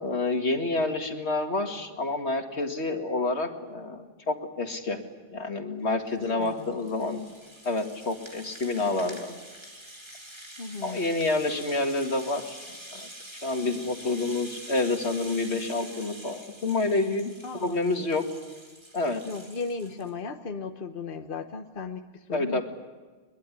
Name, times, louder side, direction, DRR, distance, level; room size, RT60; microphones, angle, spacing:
voice 1, 0.0-5.0 5.3-7.3 7.6-9.3 10.8-12.6 12.9-13.1 13.4-17.3 17.6-18.2 18.9-19.2 22.3-22.6, left 2 dB, 85° left, 4 dB, 2.4 m, -28 dB
Rattle (instrument), 5.9-20.1, right 1 dB, 25° right, 2.9 m, -46 dB
voice 2, 6.3-6.7 10.6-11.0 17.4-17.8 19.3-22.6, left 4 dB, 55° left, 6 dB, 1.3 m, -36 dB
22.5 x 21.5 x 9.9 m, 1.4 s
omnidirectional pair, 1.1 m